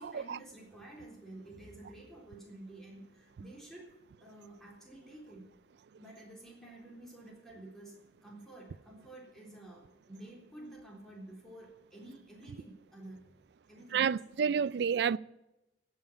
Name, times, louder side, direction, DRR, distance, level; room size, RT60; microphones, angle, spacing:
voice 1, 0.0-3.9 4.2-5.5 6.0-13.3 13.7-14.1, right 1 dB, ahead, 3.5 m, -50 dB
voice 2, 13.9-15.2, right 7 dB, 60° right, 0.3 m, -29 dB
16.0 x 5.6 x 8.8 m
head